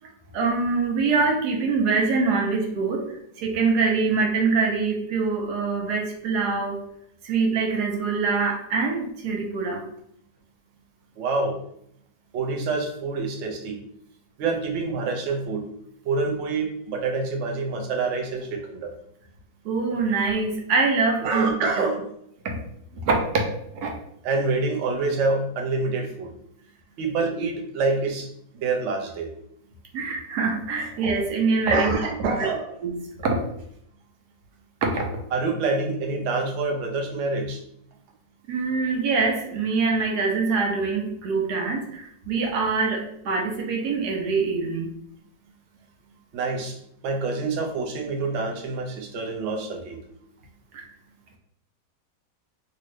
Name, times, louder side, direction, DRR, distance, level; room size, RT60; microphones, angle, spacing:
voice 1, 0.3-3.1 3.4-6.8 7.2-9.8 19.6-21.5 22.4-22.6 22.9-23.4 23.7-23.9 29.9-32.0 32.4-32.5 32.8-33.4 34.8-35.0 38.5-44.9 50.7-50.8, right 4 dB, 85° right, 1 dB, 1.2 m, -24 dB
voice 2, 11.2-11.6 12.3-13.8 14.4-15.6 16.1-18.9 21.2-22.0 24.2-26.3 27.0-28.3 28.6-29.3 31.7-32.7 35.3-37.6 46.3-46.8 47.0-50.0, right 3 dB, 60° right, 2 dB, 0.8 m, -26 dB
2.8 x 2.6 x 3.1 m, 0.71 s
omnidirectional pair, 1.7 m